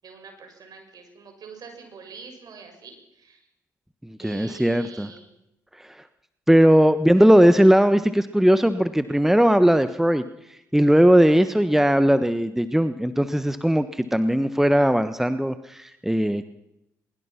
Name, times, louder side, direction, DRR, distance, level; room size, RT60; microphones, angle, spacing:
voice 1, 0.0-3.4 4.2-5.3, right 5 dB, 55° right, 5 dB, 6.8 m, -44 dB
voice 2, 4.0-5.1 5.8-5.9 6.5-10.2 10.7-16.4, equal, 5° right, 11 dB, 1.3 m, -18 dB
23.0 x 21.5 x 6.0 m, 0.84 s
hypercardioid pair, 45°, 8 cm